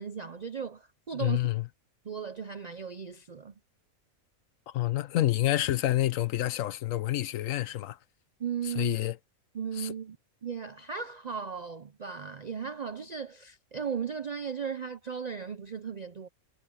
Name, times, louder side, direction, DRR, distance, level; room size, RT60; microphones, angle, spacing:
voice 1, 0.0-1.4 2.0-3.5 8.4-9.0 9.5-10.2 10.4-16.3, right 7 dB, 55° right, 0.4 m, -36 dB
voice 2, 1.1-1.7 4.7-8.0 8.6-9.2 9.8-9.9, left 14 dB, 70° left, 1.0 m, -28 dB
omnidirectional pair, 1.5 m